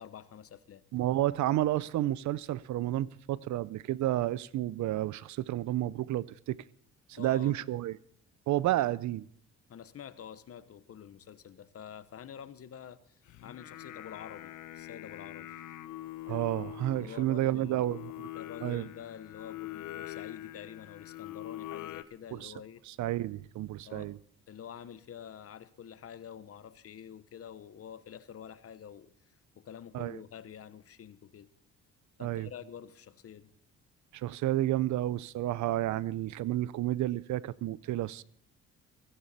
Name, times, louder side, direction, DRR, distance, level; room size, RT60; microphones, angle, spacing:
voice 1, 0.0-0.8 7.2-7.6 8.8-9.0 9.7-15.7 16.3-16.4 16.9-17.9 18.3-22.8 23.8-24.1 24.5-29.1 29.5-31.5 32.2-33.5, left 9 dB, 50° left, 1.0 m, -47 dB
voice 2, 0.9-6.6 7.1-8.0 8.5-9.2 16.3-18.3 18.6-18.9 22.3-22.5 22.9-24.2 29.9-30.2 32.2-32.5 34.1-38.2, right 14 dB, 70° right, 0.6 m, -31 dB
Singing, 13.3-22.0, left 14 dB, 80° left, 0.9 m, -44 dB
16.5 x 15.0 x 4.2 m
cardioid pair, 90°, 30 cm